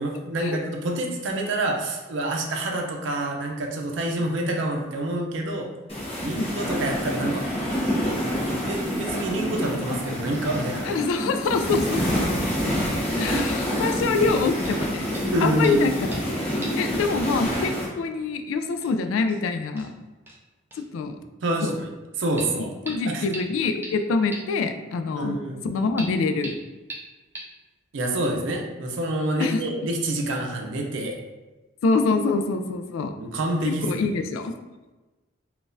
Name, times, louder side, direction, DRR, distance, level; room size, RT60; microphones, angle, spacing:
voice 1, 0.0-5.7 6.2-7.5 8.0-8.2 8.6-10.9 11.7-11.8 15.3-15.9 21.4-21.9 22.2-22.7 23.1-23.2 25.2-25.6 27.9-31.2 33.2-34.1, right 1 dB, 70° right, 1 dB, 0.5 m, -27 dB
sound 1, 5.9-17.9, equal, 30° left, 0.8 m, -27 dB
voice 2, 10.8-11.8 12.1-12.7 13.2-15.1 15.4-16.2 16.8-19.9 20.9-21.2 21.6-21.8 22.6-26.6 29.4-29.6 31.8-33.1 33.6-34.5, left 4 dB, 85° left, 8 dB, 0.3 m, -25 dB
sound 2, 14.6-14.8 15.1-15.3 15.6-16.3 16.6-16.9 17.1-17.2 18.3-18.4 18.8-18.9 19.3-19.4 19.8-19.9 20.3-20.4 20.7-20.8 22.4-22.5 22.9-23.0 23.3-23.4 23.8-23.9 24.3-24.4 26.0-26.1 26.4-26.5 26.9-27.0 27.3-27.4, right 2 dB, 10° right, 0.3 m, -38 dB
3.8 x 2.3 x 2.5 m, 1.1 s
head